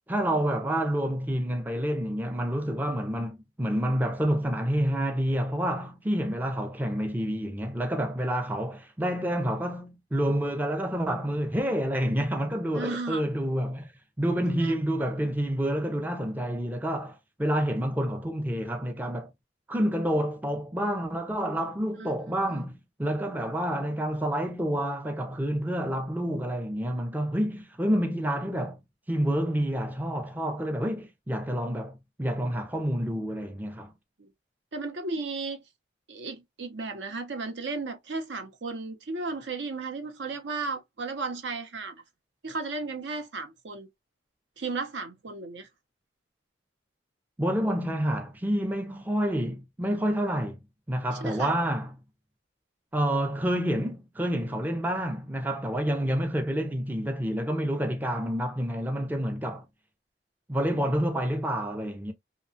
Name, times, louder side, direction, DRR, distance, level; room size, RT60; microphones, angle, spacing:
voice 1, 0.1-13.9 14.2-19.3 19.7-28.8 29.1-33.9 47.4-50.6 50.9-52.0 52.9-59.7 60.5-62.1, equal, 10° right, 0.4 m, -28 dB
voice 2, 12.7-13.2 14.6-14.8 22.0-22.1 22.5-22.6 34.2-34.3 34.7-35.6 36.1-42.0 42.4-43.9 44.6-45.7 51.2-51.6, right 3 dB, 75° right, 0.7 m, -34 dB
2.8 x 2.2 x 2.6 m
head